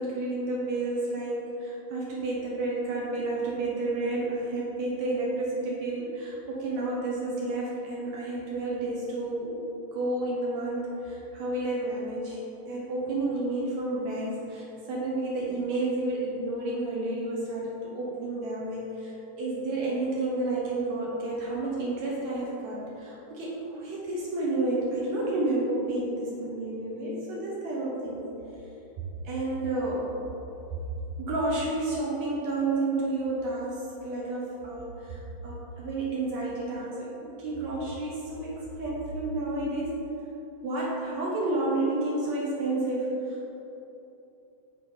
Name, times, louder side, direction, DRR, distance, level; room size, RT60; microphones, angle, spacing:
voice 1, 0.0-9.6 9.9-12.4 12.7-19.1 19.4-28.2 29.2-30.0 31.2-40.0 40.6-43.5, right 2 dB, 70° right, -5 dB, 2.0 m, -30 dB
6.8 x 4.2 x 5.0 m, 3.0 s
omnidirectional pair, 3.6 m